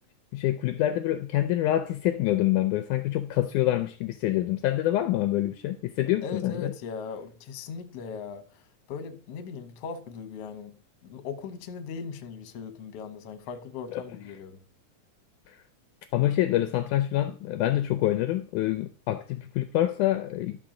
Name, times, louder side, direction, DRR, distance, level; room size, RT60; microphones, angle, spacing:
voice 1, 0.3-6.7 16.1-20.6, left 13 dB, 80° left, 2.0 m, -26 dB
voice 2, 6.2-10.8 11.0-14.6, left 5 dB, 60° left, 1.8 m, -39 dB
12.0 x 6.7 x 3.7 m
omnidirectional pair, 3.8 m